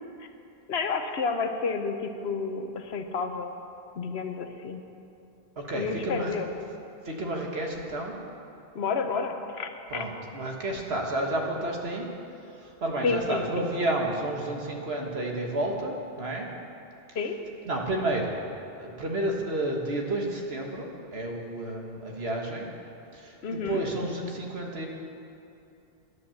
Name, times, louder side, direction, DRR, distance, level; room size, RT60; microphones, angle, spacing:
voice 1, 0.7-3.5 4.0-4.8 5.7-6.5 8.7-10.1 13.0-13.7 17.2-17.4 23.4-23.8, left 4 dB, 75° left, 7 dB, 1.1 m, -30 dB
voice 2, 5.6-6.3 7.0-8.1 9.9-12.1 12.6-16.5 17.7-18.3 18.8-22.7 23.1-24.9, right 1 dB, 70° right, 1 dB, 1.7 m, -31 dB
10.5 x 10.0 x 7.1 m, 2.7 s
omnidirectional pair, 1.1 m